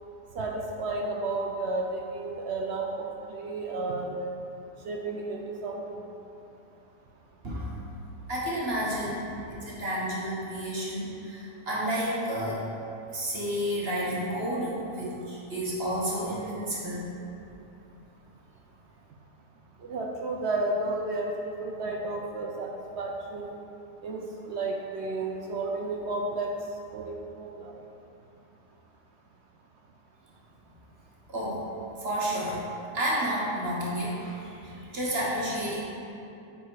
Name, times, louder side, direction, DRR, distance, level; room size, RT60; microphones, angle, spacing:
voice 1, 0.4-4.3 4.8-6.0 19.9-23.5 24.0-26.5 26.9-27.7, right 2 dB, 65° right, 1 dB, 0.6 m, -32 dB
voice 2, 8.3-12.7 13.1-17.0 31.3-31.7 32.0-32.6 32.9-35.8, equal, 40° right, -6 dB, 1.4 m, -31 dB
8.6 x 4.5 x 4.7 m, 2.8 s
omnidirectional pair, 1.8 m